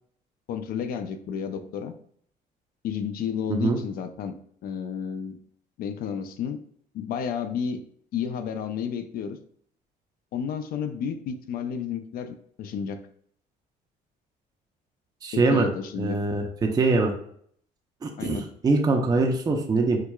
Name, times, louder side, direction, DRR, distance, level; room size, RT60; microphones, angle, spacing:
voice 1, 0.5-1.9 2.8-4.4 4.6-5.4 5.8-6.6 6.9-7.8 8.1-9.4 10.3-13.0 15.3-16.2 18.2-18.5, left 7 dB, 60° left, 10 dB, 0.4 m, -31 dB
voice 2, 15.2-15.7 16.0-17.1 18.0-18.4 18.6-20.0, right 3 dB, 20° right, 2 dB, 0.5 m, -23 dB
4.6 x 2.3 x 2.2 m, 0.63 s
cardioid pair, 110°, 17 cm